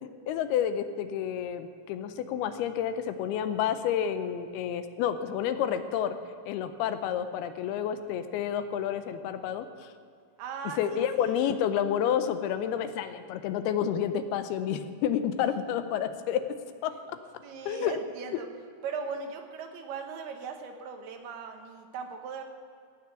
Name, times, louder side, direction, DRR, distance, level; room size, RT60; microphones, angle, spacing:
voice 1, 0.0-6.2 6.5-9.9 10.6-16.6 16.8-17.2 17.7-18.0, left 9 dB, 90° left, 10 dB, 2.7 m, -30 dB
voice 2, 10.4-11.4 17.4-18.5 18.8-22.4, right 5 dB, 80° right, 4 dB, 3.2 m, -39 dB
16.5 x 6.6 x 8.1 m, 2.3 s
omnidirectional pair, 4.5 m